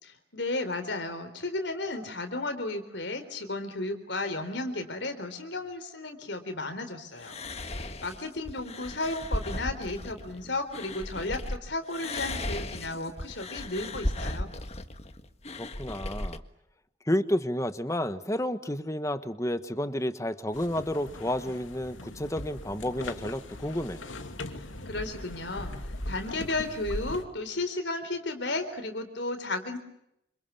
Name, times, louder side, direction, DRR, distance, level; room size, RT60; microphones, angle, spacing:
voice 1, 0.0-7.4 7.7-14.5 24.6-25.7 26.1-29.8, left 2 dB, 65° left, 8 dB, 4.0 m, -34 dB
sound 1, 7.2-11.6 11.9-16.4, left 1 dB, 35° left, 1.6 m, -36 dB
voice 2, 15.6-16.4 17.1-24.0, left 1 dB, 15° left, 11 dB, 1.3 m, -31 dB
sound 2, 20.5-27.2, left 1 dB, 90° left, 2.8 m, -40 dB
28.0 x 27.0 x 7.2 m, 0.79 s
head